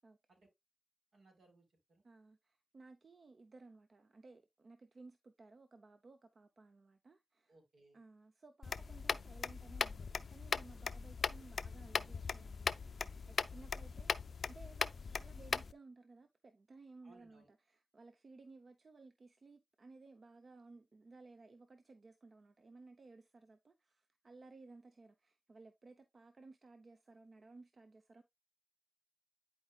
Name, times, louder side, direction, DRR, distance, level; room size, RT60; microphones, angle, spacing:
voice 1, 1.1-2.0 7.5-8.0 13.7-13.9 17.0-17.5, right 2 dB, 80° right, 3.5 m, -66 dB
voice 2, 2.0-7.6 7.9-14.2 14.4-28.2, right 3 dB, 55° right, 0.8 m, -59 dB
sound 1, 8.6-15.7, left 5 dB, 70° left, 0.4 m, -39 dB
10.5 x 4.6 x 2.3 m
cardioid pair, 60°, 0 cm